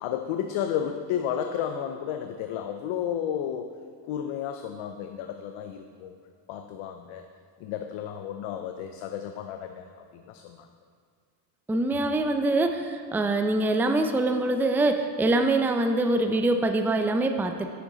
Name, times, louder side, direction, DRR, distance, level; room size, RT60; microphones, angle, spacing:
voice 1, 0.0-3.7 4.1-6.1 6.5-7.3 7.6-9.9 10.1-10.6, left 9 dB, 80° left, 6 dB, 0.6 m, -32 dB
voice 2, 11.7-17.7, right 2 dB, 5° right, 6 dB, 0.4 m, -24 dB
7.8 x 6.6 x 3.8 m, 2.1 s
supercardioid pair, 65°, 48 cm